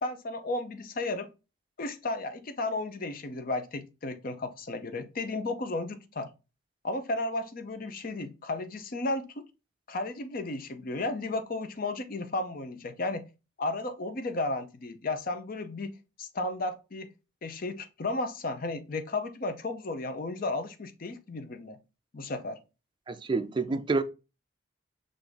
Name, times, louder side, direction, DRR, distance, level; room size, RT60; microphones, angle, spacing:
voice 1, 0.0-1.3 1.8-6.3 6.8-9.4 9.9-13.3 13.6-15.9 16.2-17.1 17.4-21.8 22.1-22.6 23.7-23.8, left 2 dB, 45° left, 0.6 m, -34 dB
voice 2, 23.1-24.0, right 3 dB, 25° right, 0.4 m, -28 dB
5.5 x 2.6 x 3.4 m
head